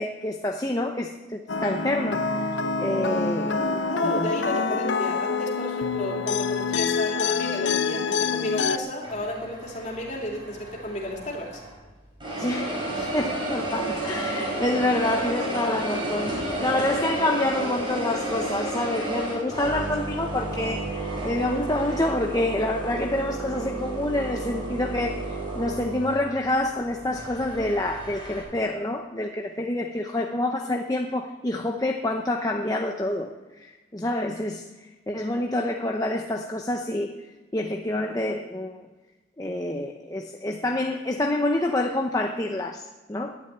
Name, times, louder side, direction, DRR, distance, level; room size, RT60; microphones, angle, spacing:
voice 1, 0.0-2.5 2.8-4.3 12.3-12.8 13.1-34.6 35.1-37.1 37.5-38.9 39.4-43.4, left 1 dB, 20° left, 3 dB, 0.7 m, -27 dB
sound 1, 1.5-8.8, left 5 dB, 80° left, 0.9 m, -26 dB
voice 2, 3.9-11.6 13.0-13.3, left 1 dB, 40° left, -1 dB, 3.3 m, -33 dB
sound 2, 9.0-11.8 12.2-28.4, right 2 dB, 25° right, 5.7 m, -32 dB
11.5 x 9.7 x 9.2 m, 1.2 s
head